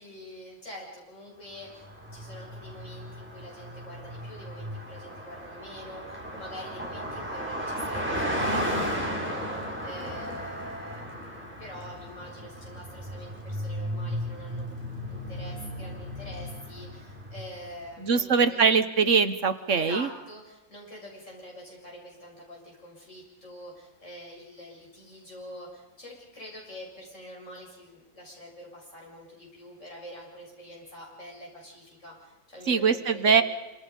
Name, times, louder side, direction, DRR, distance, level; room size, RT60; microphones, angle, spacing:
voice 1, 0.0-1.9 2.1-14.6 15.1-18.7 19.7-33.4, equal, 55° left, -2 dB, 7.8 m, -45 dB
Car passing by, 1.7-17.7, equal, 5° right, 4.9 m, -35 dB
voice 2, 18.0-20.1 32.7-33.4, right 5 dB, 55° right, 10 dB, 1.5 m, -22 dB
26.5 x 26.0 x 5.5 m, 1.0 s
omnidirectional pair, 1.5 m